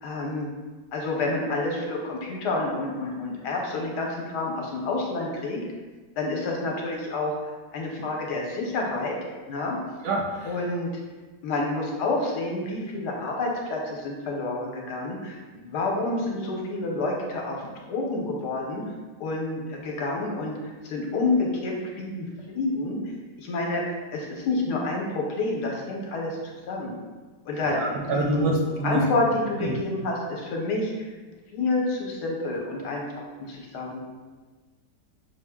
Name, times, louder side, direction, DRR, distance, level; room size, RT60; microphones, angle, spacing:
voice 1, 0.0-0.5 0.9-5.6 6.2-7.3 7.7-9.2 9.5-9.8 10.4-10.9 11.4-18.8 19.2-20.6 20.8-23.0 23.4-26.4 26.7-27.0 27.5-28.5 28.8-31.1 31.5-34.0, left 2 dB, 70° left, -1 dB, 1.3 m, -29 dB
voice 2, 10.0-10.5 27.7-29.0 29.6-29.8, right 1 dB, 70° right, -2 dB, 1.0 m, -26 dB
6.1 x 2.0 x 3.4 m, 1.3 s
omnidirectional pair, 1.9 m